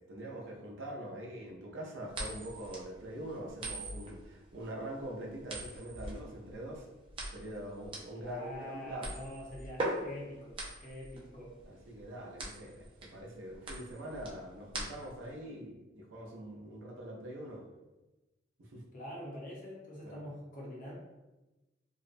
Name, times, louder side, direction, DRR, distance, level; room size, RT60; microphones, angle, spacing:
voice 1, 0.0-6.9 7.3-9.1 11.7-17.6 18.6-18.8 20.0-20.2, right 1 dB, 85° right, -1 dB, 0.6 m, -44 dB
sound 1, 2.1-15.3, right 2 dB, 30° right, 0.4 m, -42 dB
voice 2, 8.2-11.5 18.9-21.0, equal, 45° left, -4 dB, 0.7 m, -45 dB
2.6 x 2.1 x 2.5 m, 1.1 s
head